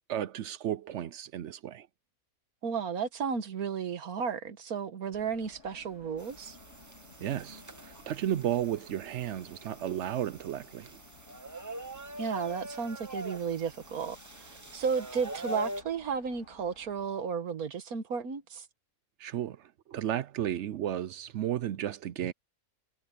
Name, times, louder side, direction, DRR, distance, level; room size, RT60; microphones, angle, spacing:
voice 1, 0.1-1.9 7.2-11.0 19.2-22.3, right 11 dB, 65° right, 0.8 m, -33 dB
voice 2, 2.6-6.6 12.2-18.7, right 6 dB, 90° right, 1.8 m, -33 dB
sound 1, 5.1-17.2, left 3 dB, 55° left, 3.3 m, -57 dB
sound 2, 6.2-15.8, right 1 dB, 15° right, 0.6 m, -43 dB
omnidirectional pair, 1.5 m